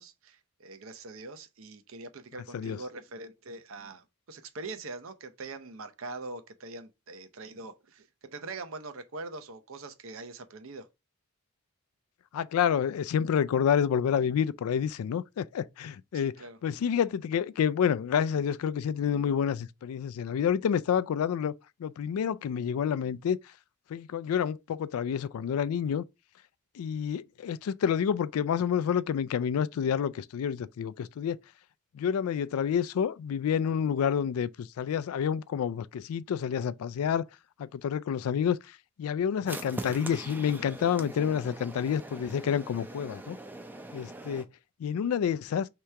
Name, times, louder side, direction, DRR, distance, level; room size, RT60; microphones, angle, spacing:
voice 1, 0.0-10.9 16.1-16.6, right 3 dB, 65° right, 0.6 m, -43 dB
voice 2, 12.3-16.3 16.6-21.5 21.8-23.4 23.9-26.0 26.8-31.4 31.9-37.3 37.6-38.6 39.0-43.4 43.9-44.4 44.8-45.7, left 8 dB, 80° left, 0.3 m, -28 dB
sound 1, 39.5-44.5, right 1 dB, 10° right, 0.4 m, -42 dB
3.3 x 2.9 x 4.6 m
head